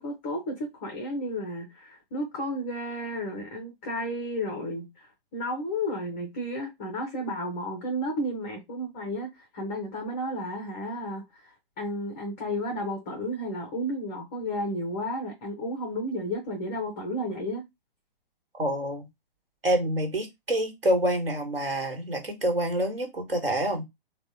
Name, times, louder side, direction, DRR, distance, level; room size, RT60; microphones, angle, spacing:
voice 1, 0.0-9.3 9.5-17.6, equal, 15° left, 0.4 m, -32 dB
voice 2, 18.5-19.1 19.6-23.8, right 1 dB, 75° right, 1.3 m, -27 dB
3.4 x 2.1 x 2.9 m
figure-of-eight pair, 120°, 29 cm